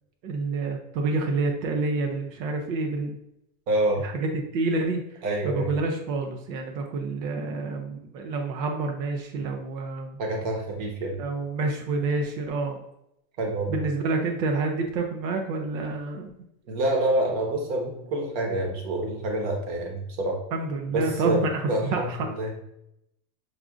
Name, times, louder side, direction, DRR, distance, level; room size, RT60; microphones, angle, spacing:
voice 1, 0.2-3.2 4.0-5.0 5.4-10.2 11.2-12.8 13.7-16.3 20.5-22.2, right 3 dB, 85° right, 3 dB, 0.8 m, -28 dB
voice 2, 3.7-4.0 5.2-5.7 10.2-11.2 13.4-13.8 16.7-20.4 20.9-22.6, right 1 dB, 50° right, 1 dB, 1.1 m, -27 dB
6.5 x 2.5 x 2.4 m, 0.81 s
supercardioid pair, 165°, 49 cm